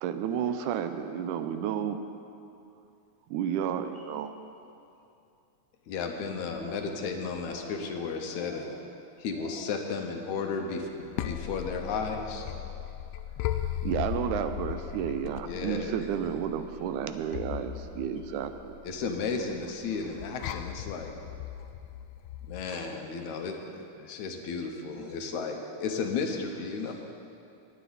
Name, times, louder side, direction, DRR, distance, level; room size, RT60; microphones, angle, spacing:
voice 1, 0.0-2.0 3.3-4.3 11.2-11.3 13.8-18.8, right 9 dB, 85° right, 9 dB, 2.0 m, -31 dB
voice 2, 5.9-8.8 9.2-12.4 15.4-16.0 18.8-21.2 22.5-26.9, left 5 dB, 75° left, 4 dB, 2.2 m, -34 dB
sound 1, 6.4-7.0 7.3-7.9 8.3-8.8 9.3-9.8 10.2-10.7 11.1-11.5, right 1 dB, 15° left, 1.0 m, -46 dB
sound 2, 10.8-22.7, left 12 dB, 90° left, 1.5 m, -38 dB
voice 3, 12.1-12.7 16.7-16.8 22.6-22.8 24.9-25.5 26.6-26.9, right 1 dB, 45° right, -5 dB, 1.2 m, -48 dB
19.0 x 9.1 x 4.0 m, 2.6 s
omnidirectional pair, 3.5 m